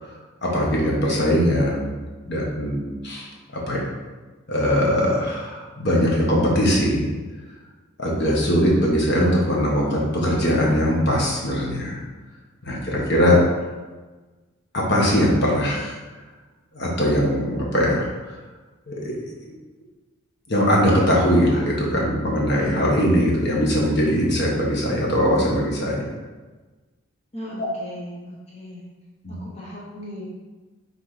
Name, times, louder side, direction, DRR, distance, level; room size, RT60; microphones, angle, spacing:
voice 1, 0.0-1.9 2.3-3.3 3.7-3.9 4.5-7.1 8.0-12.0 12.6-13.4 14.7-15.9 16.7-18.1 18.9-19.2 20.5-26.1 27.6-27.7 29.2-29.4, equal, 55° left, -3 dB, 1.6 m, -21 dB
voice 2, 27.3-28.8 29.3-30.3, left 1 dB, 30° left, -6 dB, 1.0 m, -37 dB
6.0 x 3.7 x 5.1 m, 1.3 s
head